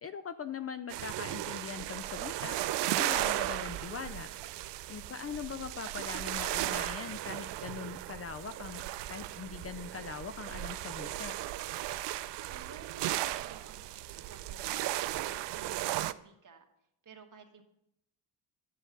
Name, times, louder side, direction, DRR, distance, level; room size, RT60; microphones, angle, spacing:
voice 1, 0.0-2.6 2.8-4.3 4.9-8.8 9.1-11.3, left 6 dB, 35° left, 11 dB, 0.4 m, -41 dB
sound 1, 0.9-16.1, right 15 dB, 70° right, 0.5 m, -36 dB
voice 2, 12.5-13.8 14.1-16.6 17.0-17.6, right 6 dB, 45° right, 4 dB, 1.4 m, -54 dB
9.9 x 7.5 x 4.0 m, 0.80 s
cardioid pair, 75°, 44 cm